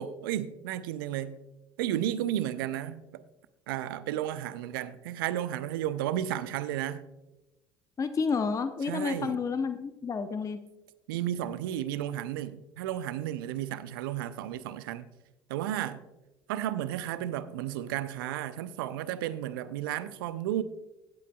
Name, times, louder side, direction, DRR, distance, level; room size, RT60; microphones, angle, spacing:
voice 1, 0.0-1.4 1.8-3.2 3.7-7.0 8.9-9.4 11.1-15.1 15.5-16.0 16.5-20.6, right 12 dB, 75° right, 0.5 m, -33 dB
voice 2, 8.0-10.6, left 5 dB, 30° left, 0.7 m, -30 dB
15.5 x 8.3 x 2.3 m
hypercardioid pair, 65°, 12 cm